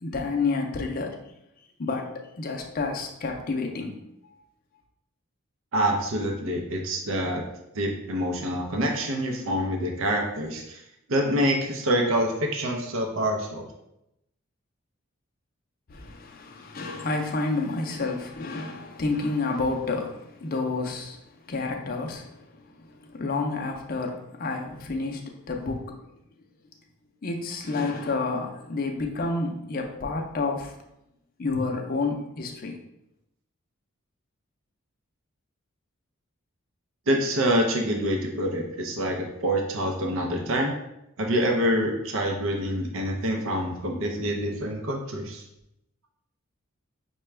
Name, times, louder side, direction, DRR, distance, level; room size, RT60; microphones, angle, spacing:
voice 1, 0.0-1.2 1.8-3.9 15.9-21.2 21.5-22.4 22.8-26.0 27.2-30.7 31.4-32.8, left 3 dB, 45° left, 2 dB, 0.5 m, -29 dB
voice 2, 5.7-7.4 7.7-10.8 11.1-13.7 37.1-40.7 41.2-45.4, equal, 70° right, 2 dB, 0.5 m, -26 dB
5.8 x 2.2 x 3.2 m, 0.85 s
head